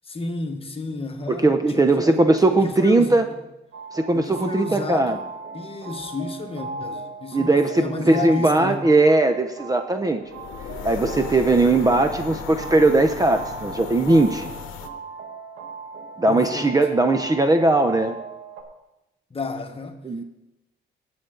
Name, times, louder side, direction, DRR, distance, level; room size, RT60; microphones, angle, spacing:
voice 1, 0.0-3.4 4.1-5.2 5.5-8.8 16.3-16.8 19.3-20.0, left 3 dB, 30° left, 1.4 m, -32 dB
voice 2, 1.4-3.2 3.9-5.2 7.3-10.2 10.8-14.5 16.2-18.2 20.0-20.2, right 2 dB, 20° right, 0.7 m, -19 dB
sound 1, 3.7-18.6, right 4 dB, 85° right, 1.5 m, -38 dB
sound 2, 10.3-14.9, left 7 dB, 85° left, 0.9 m, -35 dB
16.5 x 7.1 x 3.9 m
cardioid pair, 90°, 20 cm